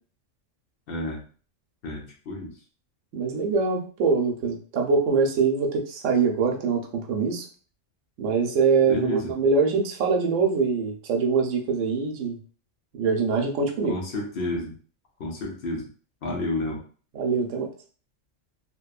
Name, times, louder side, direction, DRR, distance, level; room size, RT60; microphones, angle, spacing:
voice 1, 0.9-1.2 1.8-2.5 8.9-9.3 13.9-14.7 15.2-15.9 16.2-16.8, left 2 dB, 60° left, 0 dB, 0.7 m, -30 dB
voice 2, 3.1-7.4 8.2-12.4 13.0-14.0 17.1-17.7, right 5 dB, 90° right, 2 dB, 1.0 m, -23 dB
2.9 x 2.1 x 2.3 m, 0.41 s
omnidirectional pair, 1.2 m